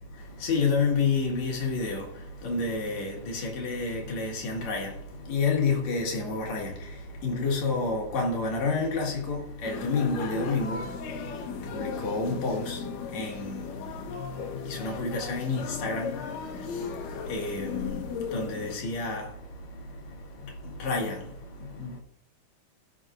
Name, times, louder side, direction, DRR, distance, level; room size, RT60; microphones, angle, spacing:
voice 1, 0.2-22.0, left 4 dB, 60° left, 3.0 m, -30 dB
sound 1, 9.6-18.8, left 6 dB, 90° left, 2.6 m, -37 dB
18.0 x 6.2 x 2.5 m
omnidirectional pair, 3.8 m